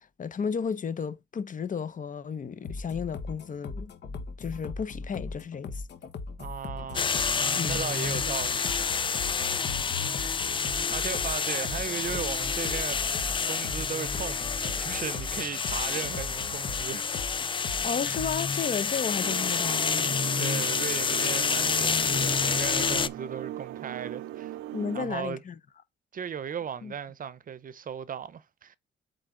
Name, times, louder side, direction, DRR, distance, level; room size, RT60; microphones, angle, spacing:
voice 1, 0.0-3.9 4.4-5.8 7.6-7.8 17.8-19.9 24.7-25.6 26.8-26.9, left 6 dB, 40° left, 0.8 m, -33 dB
sound 1, 2.6-18.6, left 4 dB, 60° left, 1.3 m, -39 dB
voice 2, 6.4-7.1 7.4-8.7 10.6-17.1 20.4-24.5 24.9-25.4 26.1-28.8, right 7 dB, 45° right, 0.7 m, -37 dB
sound 2, 6.9-23.1, left 5 dB, 25° left, 0.4 m, -28 dB
sound 3, 19.2-25.1, right 13 dB, 85° right, 0.6 m, -39 dB
8.0 x 3.9 x 3.8 m
cardioid pair, 90°, 20 cm